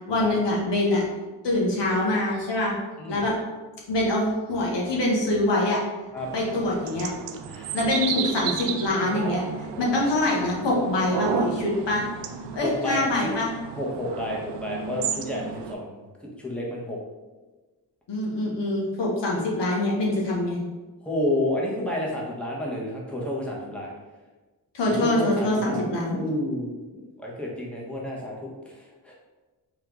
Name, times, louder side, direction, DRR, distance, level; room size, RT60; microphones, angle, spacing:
voice 1, 0.1-1.0 1.4-2.7 3.1-3.4 3.9-5.8 6.3-7.1 7.7-9.4 9.8-12.0 12.5-13.5 18.1-20.6 24.7-26.2, left 1 dB, 70° left, -3 dB, 1.0 m, -24 dB
sound 1, 6.2-15.7, right 7 dB, 70° right, 0.5 m, -33 dB
voice 2, 7.4-7.8 9.7-9.9 12.6-13.3 13.7-17.0 21.0-23.9 24.8-25.8 26.1-29.1, left 1 dB, 5° left, -4 dB, 1.3 m, -30 dB
3.3 x 3.1 x 3.7 m, 1.2 s
supercardioid pair, 45°, 44 cm